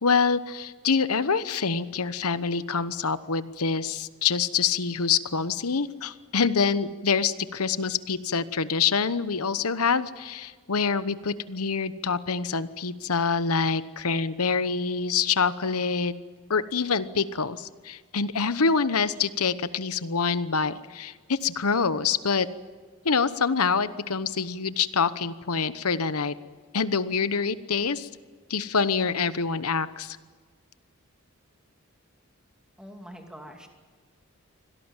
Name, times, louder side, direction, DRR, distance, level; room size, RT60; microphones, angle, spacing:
voice 1, 0.0-16.1 16.5-22.5 23.0-26.3 26.7-28.1 28.5-30.2, left 5 dB, 85° left, 14 dB, 1.0 m, -26 dB
voice 2, 32.8-33.7, equal, 5° right, 3 dB, 2.6 m, -44 dB
25.5 x 17.5 x 9.0 m, 1.5 s
head